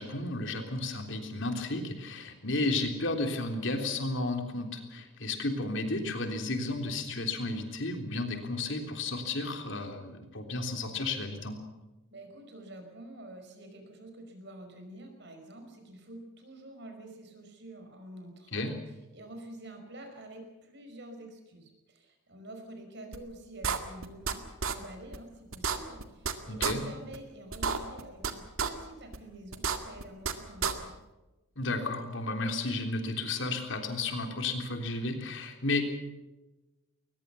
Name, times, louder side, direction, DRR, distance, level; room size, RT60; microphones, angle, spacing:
voice 1, 0.0-11.6 18.5-18.7 26.5-26.8 31.6-36.0, left 2 dB, 55° left, 5 dB, 3.5 m, -33 dB
voice 2, 12.1-18.7 19.1-31.0, right 1 dB, 50° right, 5 dB, 5.3 m, -48 dB
sound 1, 23.1-23.2 23.6-24.3 24.6-24.7 25.1-25.2 25.5-26.3 26.6-26.7 27.1-27.2 27.5-28.3 28.6-28.7 29.1-29.2 29.5-30.3 30.6-30.7, right 6 dB, 75° right, 2.0 m, -30 dB
22.0 x 20.0 x 7.0 m, 1.1 s
head